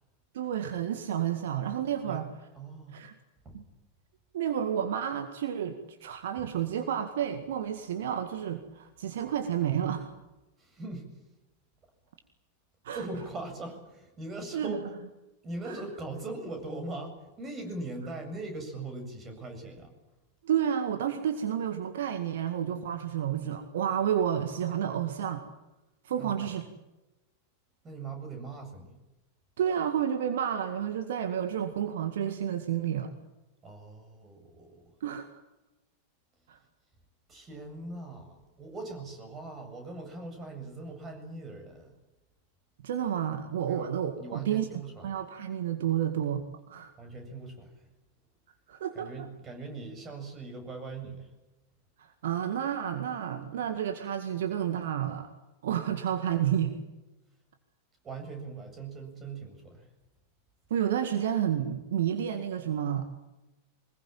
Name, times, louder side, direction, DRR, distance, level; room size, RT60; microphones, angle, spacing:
voice 1, 0.3-2.3 2.9-3.1 3.5-3.6 4.3-10.1 12.8-13.1 14.5-14.8 15.7-15.8 20.4-25.4 26.0-26.6 29.6-33.1 35.0-35.3 36.5-36.6 42.8-44.7 45.0-46.4 46.7-46.9 48.7-49.1 52.0-55.3 55.6-56.7 60.7-63.1, right 9 dB, 60° right, 7 dB, 1.9 m, -30 dB
voice 2, 2.5-2.9 3.4-3.6 6.4-6.5 10.6-11.0 12.9-14.8 15.4-19.9 26.2-26.5 27.8-28.9 33.6-34.8 37.3-41.9 43.7-43.9 44.2-45.1 47.0-47.7 48.9-51.3 58.0-59.9, right 2 dB, 25° right, 5 dB, 7.7 m, -40 dB
24.5 x 21.0 x 9.1 m, 1.0 s
figure-of-eight pair, 90°, 0 cm